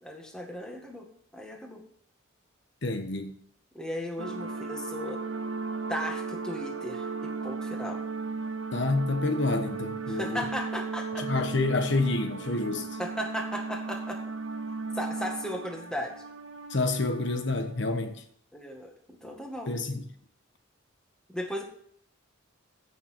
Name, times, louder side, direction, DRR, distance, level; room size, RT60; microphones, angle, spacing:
voice 1, 0.0-1.1 1.3-1.8 3.7-5.2 5.9-8.0 10.1-11.3 13.0-14.2 14.9-16.2 18.5-19.9 21.3-21.6, equal, 5° left, 1.9 m, -36 dB
voice 2, 2.8-3.3 8.7-10.4 11.2-13.0 16.7-18.2 19.7-20.0, left 2 dB, 60° left, 1.1 m, -28 dB
sound 1, 4.2-17.8, right 4 dB, 80° right, 1.5 m, -36 dB
15.5 x 6.7 x 4.4 m
head